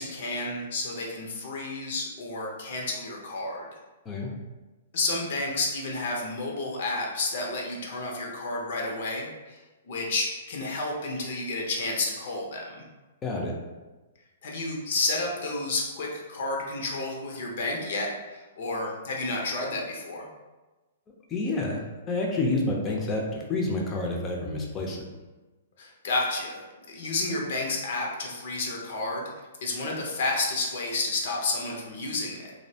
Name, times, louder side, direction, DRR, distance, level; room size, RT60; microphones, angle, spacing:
voice 1, 0.0-3.7 4.9-9.6 9.9-12.8 14.4-20.3 25.8-26.6 26.9-29.3 29.6-32.5, left 2 dB, 60° left, -1 dB, 0.6 m, -31 dB
voice 2, 13.2-13.5 21.3-21.8 22.1-25.0, left 2 dB, 20° left, -1 dB, 0.5 m, -28 dB
2.6 x 2.1 x 2.7 m, 1.2 s
hypercardioid pair, 140°, 0 cm